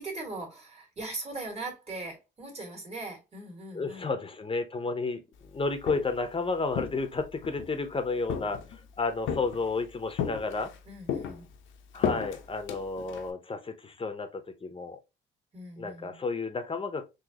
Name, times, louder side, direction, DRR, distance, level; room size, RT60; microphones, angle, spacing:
voice 1, 0.0-4.1 10.9-11.5 15.5-16.2, right 2 dB, 30° right, 2.0 m, -40 dB
voice 2, 3.7-5.2 5.5-10.7 11.9-15.0 15.8-17.0, left 3 dB, 25° left, 0.8 m, -32 dB
Walk footsteps, 5.6-6.3 6.7-7.7 8.3-8.9 9.3-9.8 10.2-10.8 11.1-13.3, left 7 dB, 80° left, 0.8 m, -34 dB
4.0 x 2.8 x 2.8 m
cardioid pair, 90°, 20 cm